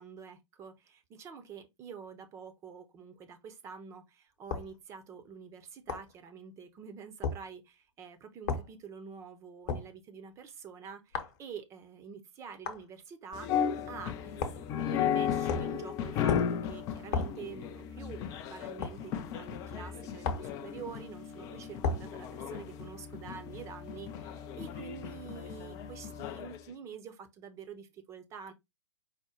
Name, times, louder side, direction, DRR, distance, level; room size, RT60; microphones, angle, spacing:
voice 1, 0.0-13.5 13.9-28.5, right 6 dB, 20° right, 0.7 m, -47 dB
sound 1, 4.5-4.7 5.9-6.1 7.2-7.4 8.5-8.7 9.7-9.9 11.1-11.4 12.6-12.8 14.4-14.7 15.5-15.8 16.3-16.6 17.1-17.4 18.8-19.0 20.2-20.5 21.8-22.1, left 4 dB, 40° left, 1.0 m, -33 dB
sound 2, 13.3-26.6, left 8 dB, 20° left, 0.4 m, -35 dB
4.9 x 2.1 x 4.4 m
figure-of-eight pair, 120°, 16 cm